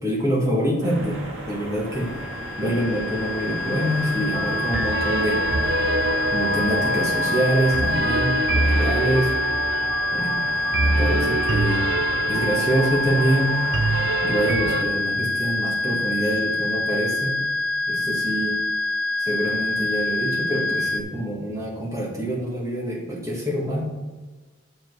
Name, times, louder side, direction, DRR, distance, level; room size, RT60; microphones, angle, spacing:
voice 1, 0.0-5.4 6.3-9.3 10.1-10.5 10.8-11.9 12.3-13.6 14.2-17.4 17.9-18.6 19.2-23.8, equal, 15° right, -3 dB, 1.7 m, -25 dB
sound 1, 0.8-14.5, right 1 dB, 90° right, 2.1 m, -36 dB
sound 2, 1.9-21.0, left 2 dB, 60° left, 0.6 m, -26 dB
sound 3, 4.3-14.8, right 2 dB, 60° right, 0.6 m, -26 dB
7.4 x 5.2 x 6.2 m, 1.3 s
head